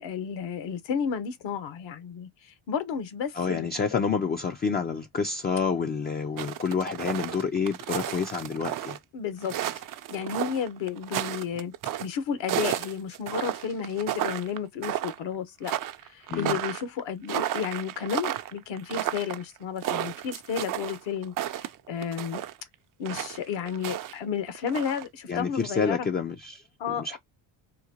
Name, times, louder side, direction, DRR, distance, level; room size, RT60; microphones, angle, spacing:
voice 1, 0.0-4.0 9.1-9.8 10.1-11.7 12.0-15.7 16.0-22.4 23.0-26.1 26.8-27.2, left 7 dB, 65° left, 1.0 m, -32 dB
voice 2, 3.4-9.0 16.3-16.6 25.3-27.2, left 5 dB, 20° left, 0.4 m, -28 dB
sound 1, 6.4-9.0 9.4-12.1 12.5-14.6 14.8-15.3 15.6-22.5 23.1-24.1 24.5-25.0, right 12 dB, 45° right, 0.5 m, -32 dB
3.9 x 2.1 x 2.8 m
cardioid pair, 85°, 48 cm